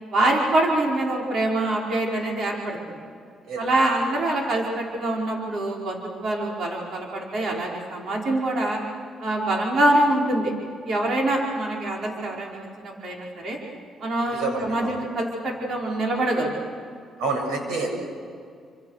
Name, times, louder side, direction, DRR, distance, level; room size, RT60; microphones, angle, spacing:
voice 1, 0.1-3.0 3.6-8.8 9.2-10.5 10.9-13.6 14.0-16.5, right 1 dB, 60° right, -2 dB, 5.2 m, -25 dB
voice 2, 14.3-15.0 17.2-17.9, right 3 dB, 90° right, 3 dB, 7.3 m, -28 dB
29.0 x 26.5 x 6.7 m, 2.3 s
cardioid pair, 90°, 0 cm